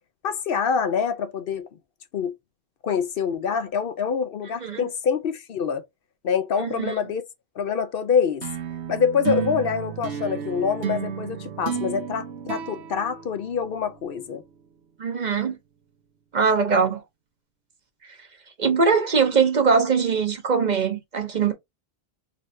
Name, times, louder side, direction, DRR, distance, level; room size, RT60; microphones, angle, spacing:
voice 1, 0.2-1.7 2.1-2.3 2.8-5.8 6.2-7.2 7.6-8.5 8.9-14.4, left 6 dB, 65° left, 0.8 m, -25 dB
voice 2, 6.6-6.9 15.0-15.6 16.3-17.0 18.6-21.5, right 5 dB, 45° right, 0.8 m, -21 dB
sound 1, 8.4-14.0, right 8 dB, 85° right, 1.0 m, -32 dB
4.0 x 3.1 x 2.6 m
omnidirectional pair, 1.1 m